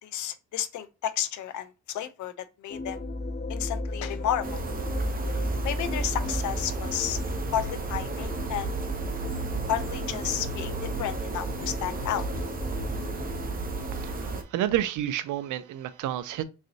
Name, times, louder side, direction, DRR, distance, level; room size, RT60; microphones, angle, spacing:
voice 1, 0.0-3.0 3.5-4.6 5.6-7.2 7.5-8.7 9.7-12.2, left 10 dB, 75° left, 0.6 m, -32 dB
sound 1, 2.7-14.4, equal, 35° left, 1.1 m, -35 dB
sound 2, 4.4-14.4, right 3 dB, 30° right, 0.8 m, -33 dB
voice 2, 13.9-16.4, right 12 dB, 80° right, 0.5 m, -30 dB
3.8 x 3.2 x 2.7 m
cardioid pair, 90°, 30 cm